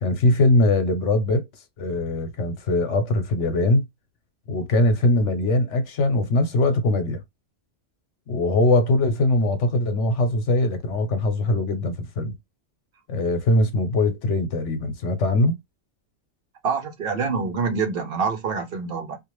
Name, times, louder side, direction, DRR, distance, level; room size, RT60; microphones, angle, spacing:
voice 1, 0.0-1.5 1.8-3.8 4.5-7.2 8.3-12.3 13.1-15.6, left 2 dB, 80° left, 1.1 m, -21 dB
voice 2, 16.6-19.2, right 5 dB, 55° right, 0.9 m, -26 dB
2.5 x 2.5 x 3.0 m
omnidirectional pair, 1.2 m